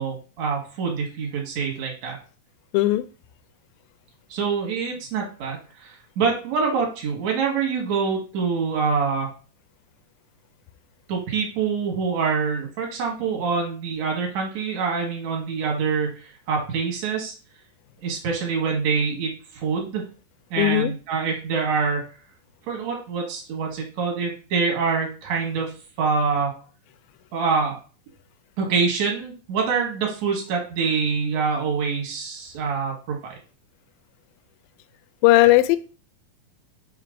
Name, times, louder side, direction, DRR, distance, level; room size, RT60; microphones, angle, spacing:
voice 1, 0.0-2.2 4.3-9.3 11.1-17.3 18.0-20.0 20.5-22.0 22.7-25.7 26.0-26.5 27.3-27.8 28.6-33.2, right 5 dB, 55° right, 2.6 m, -25 dB
voice 2, 2.7-3.1 20.6-20.9 35.2-35.8, left 17 dB, 80° left, 2.2 m, -17 dB
5.7 x 3.2 x 5.1 m
omnidirectional pair, 4.2 m